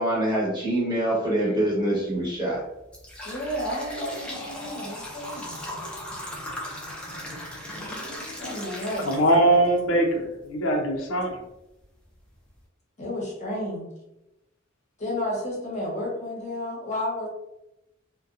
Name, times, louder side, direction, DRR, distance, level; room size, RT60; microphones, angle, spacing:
voice 1, 0.0-2.6, right 1 dB, 20° right, -7 dB, 1.0 m, -25 dB
sound 1, 2.0-2.2 2.7-9.8 10.2-10.3 11.2-11.3 11.8-11.9 12.3-12.6, equal, 5° left, 0.5 m, -37 dB
voice 2, 3.2-5.6 8.4-9.1 13.0-13.9 15.0-17.3, left 1 dB, 35° left, -4 dB, 0.8 m, -32 dB
voice 3, 9.0-11.3, right 1 dB, 70° left, 1 dB, 0.5 m, -21 dB
2.6 x 2.1 x 2.4 m, 0.89 s
head